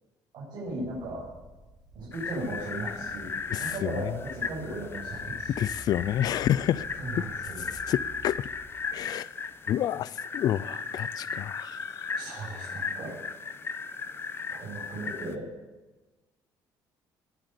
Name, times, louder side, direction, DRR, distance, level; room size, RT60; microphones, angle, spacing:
voice 1, 0.3-1.3 1.9-3.3 3.6-5.6 7.0-7.7 12.1-13.1 14.5-15.5, right 2 dB, 60° right, 7.7 m, -36 dB
sound 1, 0.6-9.5 10.2-10.6 11.1-11.2 14.8-15.5, equal, 5° right, 3.1 m, -51 dB
sound 2, 2.1-15.4, left 5 dB, 30° left, 0.9 m, -36 dB
voice 2, 3.5-3.9 5.5-6.9 7.1-7.2 7.6-8.5 8.9-9.3 9.7-12.0, left 11 dB, 55° left, 0.4 m, -29 dB
20.5 x 7.9 x 8.4 m
cardioid pair, 145°, 8 cm